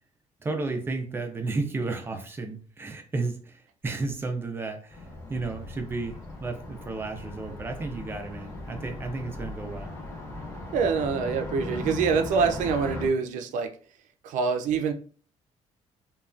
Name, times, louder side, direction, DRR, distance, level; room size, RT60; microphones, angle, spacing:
voice 1, 0.4-9.9, right 3 dB, 20° right, 0.4 m, -33 dB
Car passing by, 4.9-13.1, left 2 dB, 25° left, 0.9 m, -38 dB
voice 2, 10.7-13.7 14.2-14.9, right 5 dB, 90° right, 0.4 m, -25 dB
3.1 x 2.2 x 2.4 m
cardioid pair, 175°, 13 cm